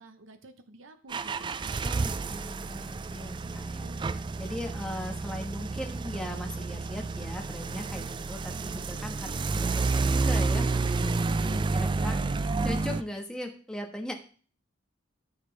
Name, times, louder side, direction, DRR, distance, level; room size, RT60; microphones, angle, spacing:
voice 1, 0.0-1.6 3.3-4.2, right 1 dB, 80° right, 8 dB, 0.8 m, -51 dB
sound 1, 1.1-13.0, right 3 dB, 25° right, 0.3 m, -30 dB
voice 2, 1.8-3.9 4.4-14.1, equal, 5° left, 2 dB, 1.2 m, -39 dB
13.5 x 5.0 x 3.3 m, 0.41 s
head